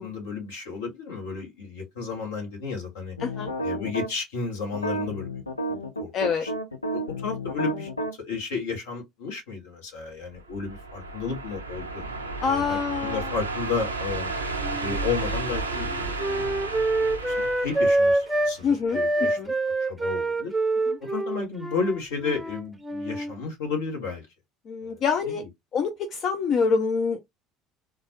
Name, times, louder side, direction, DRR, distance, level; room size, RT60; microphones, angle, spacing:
voice 1, 0.0-3.2 3.6-5.3 5.7-6.1 6.4-6.5 6.9-12.0 12.4-14.3 14.8-16.7 17.2-19.4 19.8-20.5 21.0-24.3 24.8-25.5, left 5 dB, 70° left, 1.3 m, -33 dB
sound 1, 3.2-4.1 4.7-8.1, right 1 dB, 85° left, 0.5 m, -31 dB
voice 2, 3.2-3.5 6.1-6.4 12.4-13.3 18.6-19.5 24.7-25.4 25.7-27.2, left 5 dB, 45° left, 0.5 m, -26 dB
sound 2, 10.4-18.8, right 3 dB, 85° right, 0.5 m, -33 dB
Wind instrument woodwind instrument, 14.6-18.6 18.9-23.4, right 2 dB, 10° right, 0.6 m, -26 dB
3.8 x 2.4 x 2.9 m
figure-of-eight pair, 65°, 0 cm